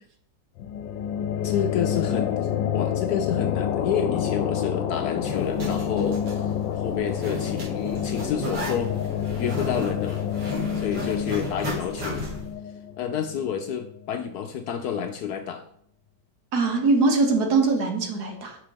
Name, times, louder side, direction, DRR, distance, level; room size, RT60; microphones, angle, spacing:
sound 1, 0.6-14.0, left 9 dB, 85° left, 1.3 m, -28 dB
voice 1, 1.4-2.3 2.7-6.5 6.8-8.9 9.4-10.2 10.8-12.3 13.0-15.6, left 8 dB, 70° left, 7 dB, 1.0 m, -29 dB
Zipper (clothing), 5.3-12.5, equal, 80° right, 2.7 m, -35 dB
voice 2, 16.5-18.6, right 3 dB, 60° right, 3 dB, 1.5 m, -22 dB
5.9 x 4.5 x 5.1 m, 0.67 s
omnidirectional pair, 2.0 m